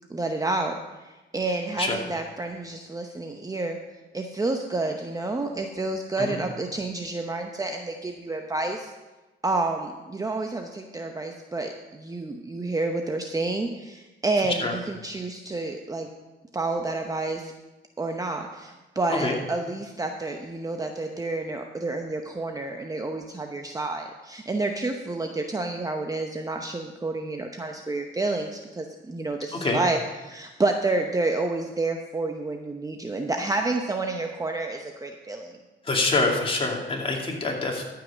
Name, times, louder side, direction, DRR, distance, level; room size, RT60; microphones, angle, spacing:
voice 1, 0.1-3.8 4.1-8.9 9.4-16.1 16.5-17.5 18.0-35.6, right 2 dB, 15° right, 3 dB, 0.8 m, -29 dB
voice 2, 35.8-37.8, left 3 dB, 25° left, -1 dB, 2.5 m, -25 dB
13.5 x 5.7 x 6.3 m, 1.1 s
cardioid pair, 90°, 20 cm